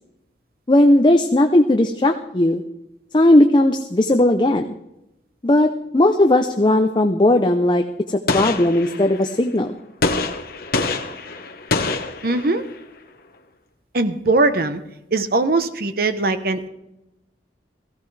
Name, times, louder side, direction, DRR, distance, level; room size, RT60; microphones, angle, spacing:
voice 1, 0.7-2.6 3.1-4.7 5.4-9.8, left 1 dB, 25° left, 5 dB, 0.6 m, -17 dB
Gunshot gunfire, 8.3-9.3 10.0-12.8, left 3 dB, 55° left, 1.2 m, -25 dB
voice 2, 12.2-12.6 13.9-14.8 15.1-16.7, right 3 dB, 55° right, 10 dB, 0.9 m, -20 dB
18.0 x 15.5 x 3.3 m, 0.91 s
head